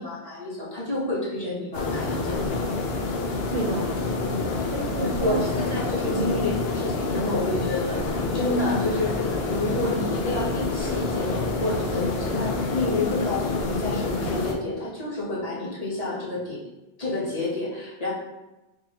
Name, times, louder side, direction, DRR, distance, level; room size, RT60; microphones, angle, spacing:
voice 1, 0.0-2.4 5.2-16.6 17.0-18.1, left 2 dB, 40° left, -7 dB, 1.1 m, -29 dB
sound 1, 1.7-14.5, left 3 dB, 75° left, 0.8 m, -27 dB
voice 2, 3.5-3.9 4.3-5.4 6.1-6.4, right 3 dB, 70° right, 0 dB, 0.8 m, -30 dB
4.6 x 2.7 x 2.9 m, 1.0 s
omnidirectional pair, 1.0 m